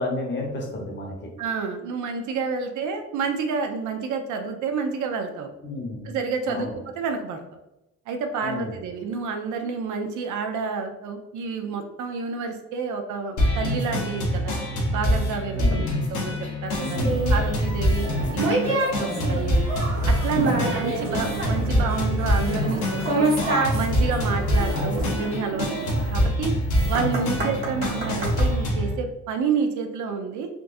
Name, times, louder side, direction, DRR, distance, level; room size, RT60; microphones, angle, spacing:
voice 1, 0.0-1.3 5.6-6.1 6.5-6.8 8.4-8.8 15.5-15.9 16.8-17.3 17.9-18.3 20.3-20.8 27.4-27.7, left 2 dB, 35° left, 0 dB, 0.9 m, -32 dB
voice 2, 1.4-5.5 6.0-7.4 8.1-14.5 14.9-15.8 16.1-16.3 16.6-17.0 17.3-19.6 20.1-23.3 23.7-25.7 26.1-26.5 26.9-30.5, right 5 dB, 80° right, 5 dB, 0.6 m, -29 dB
sound 1, 13.4-28.9, equal, 75° left, 0.9 m, -25 dB
sound 2, 16.8-28.5, right 2 dB, 45° right, 1.1 m, -28 dB
3.9 x 2.3 x 2.5 m, 0.93 s
cardioid pair, 90°, 30 cm